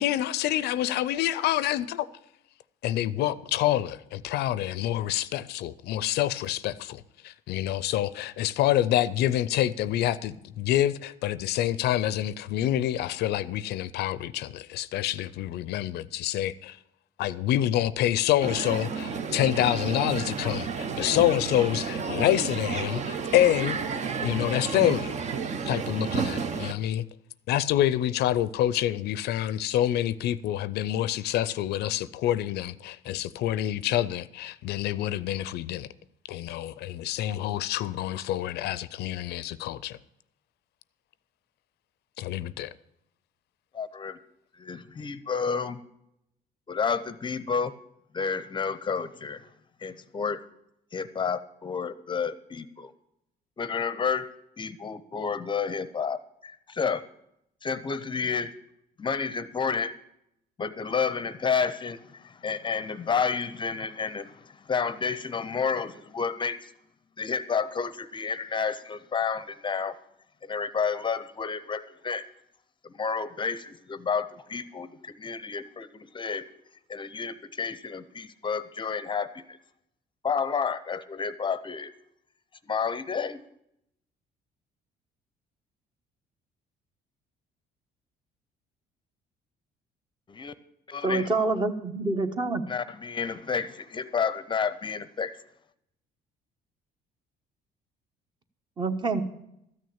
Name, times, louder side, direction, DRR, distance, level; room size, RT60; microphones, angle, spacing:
voice 1, 0.0-2.1 2.8-16.8 17.2-23.8 24.2-25.1 25.7-27.0 27.5-35.9 36.3-40.0 42.2-42.7, left 13 dB, 75° left, 0.5 m, -27 dB
Crowd, 18.4-26.7, right 5 dB, 45° right, 0.8 m, -31 dB
voice 2, 43.7-44.2 44.5-45.8 46.7-47.7 48.1-49.5 49.8-50.4 50.9-52.9 53.6-54.3 54.6-57.0 57.6-58.5 59.0-59.9 60.6-66.7 67.2-69.9 70.4-72.3 72.9-76.5 76.9-79.6 80.2-81.9 82.7-83.4 90.3-90.5 90.9-91.3 92.7-95.3, left 6 dB, 30° left, 0.6 m, -30 dB
voice 3, 91.0-92.6 98.8-99.2, right 3 dB, 25° right, 1.1 m, -26 dB
13.5 x 6.4 x 8.7 m
cardioid pair, 110°, 17 cm